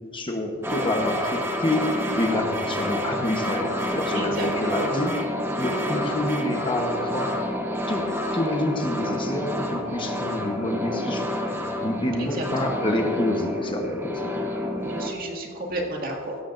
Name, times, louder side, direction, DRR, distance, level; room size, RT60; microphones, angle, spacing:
voice 1, 0.1-1.9 2.2-5.1 5.6-7.4 7.9-11.2 11.8-14.3, left 1 dB, 25° left, 3 dB, 1.0 m, -27 dB
sound 1, 0.6-15.1, left 1 dB, 10° right, 1.2 m, -29 dB
voice 2, 4.1-4.9 12.2-12.5 14.8-16.4, right 1 dB, 45° right, 0 dB, 2.0 m, -32 dB
17.0 x 13.5 x 2.6 m, 2.3 s
head